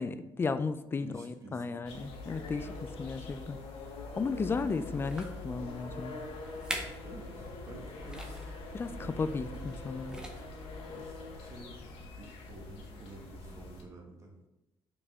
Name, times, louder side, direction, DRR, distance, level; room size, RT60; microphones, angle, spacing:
voice 1, 0.0-3.6 4.2-6.1 8.7-10.2, left 4 dB, 25° left, 12 dB, 0.4 m, -34 dB
voice 2, 1.0-1.9 7.0-8.5 8.9-9.3 10.8-14.3, right 2 dB, 35° right, 0 dB, 1.5 m, -51 dB
sound 1, 1.9-13.8, left 2 dB, 85° left, 1.0 m, -44 dB
sound 2, 5.0-5.4 6.1-6.2 6.5-7.1 7.4-7.5 8.0-8.5 9.5-9.8 10.0-10.6 11.3-11.4, right 1 dB, 10° right, 0.8 m, -42 dB
5.4 x 4.9 x 3.5 m, 0.93 s
cardioid pair, 110°, 9 cm